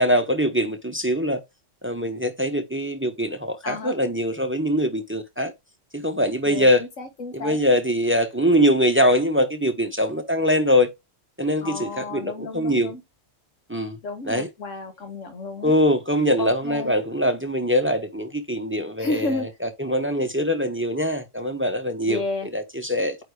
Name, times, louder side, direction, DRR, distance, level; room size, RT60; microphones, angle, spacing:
voice 1, 0.0-1.4 1.8-5.5 5.9-6.8 7.3-10.9 11.4-12.9 13.7-14.0 14.3-14.5 15.6-19.5 19.8-22.2 22.5-23.2, equal, 10° right, 0.9 m, -22 dB
voice 2, 3.6-4.0 6.4-7.6 11.6-13.0 14.0-15.7 16.4-16.9 19.0-19.5 22.0-22.5, left 3 dB, 80° left, 1.7 m, -32 dB
8.8 x 3.4 x 3.4 m
omnidirectional pair, 1.3 m